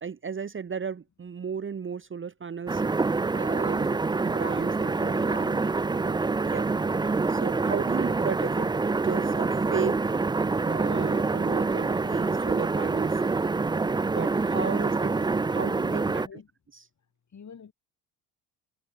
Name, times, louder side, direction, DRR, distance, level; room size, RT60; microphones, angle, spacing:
voice 1, 0.0-2.8 3.1-5.5 6.0-6.7 7.3-8.7 9.0-10.2 10.6-13.2 14.0-15.1 15.5-16.2 16.7-16.8, right 6 dB, 25° right, 1.3 m, -34 dB
sound 1, 2.7-16.3, right 3 dB, 10° right, 0.5 m, -26 dB
voice 2, 5.0-6.3 15.2-16.5 17.3-17.7, left 6 dB, 40° left, 7.2 m, -47 dB
open air
hypercardioid pair, 55°, 44 cm